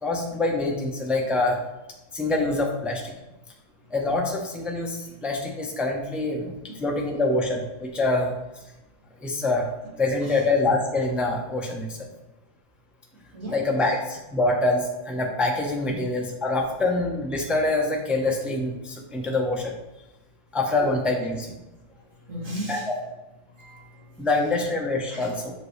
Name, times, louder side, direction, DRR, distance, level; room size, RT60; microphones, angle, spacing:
voice 1, 0.0-1.6 2.1-3.1 3.9-6.5 6.8-8.3 9.2-9.7 10.0-12.0 13.5-19.7 20.5-21.6 22.7-22.8 24.2-25.5, left 2 dB, ahead, -1 dB, 0.6 m, -25 dB
voice 2, 22.3-23.0 23.6-24.5 25.1-25.3, equal, 60° right, -6 dB, 2.6 m, -37 dB
6.7 x 5.1 x 3.3 m, 1.0 s
omnidirectional pair, 1.5 m